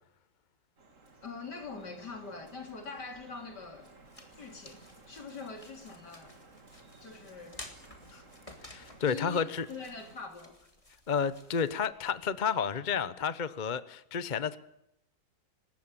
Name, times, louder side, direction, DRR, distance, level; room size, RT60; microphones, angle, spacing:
Drip, 0.8-10.2, right 3 dB, 40° right, 2.9 m, -56 dB
voice 1, 1.2-3.9 4.4-6.4 7.0-8.2 9.0-10.6, left 4 dB, 55° left, 4.0 m, -44 dB
sound 1, 3.4-12.4, left 1 dB, 15° left, 3.1 m, -54 dB
voice 2, 8.6-9.7 11.1-14.6, left 6 dB, 35° left, 0.7 m, -31 dB
24.0 x 20.0 x 8.9 m
omnidirectional pair, 2.1 m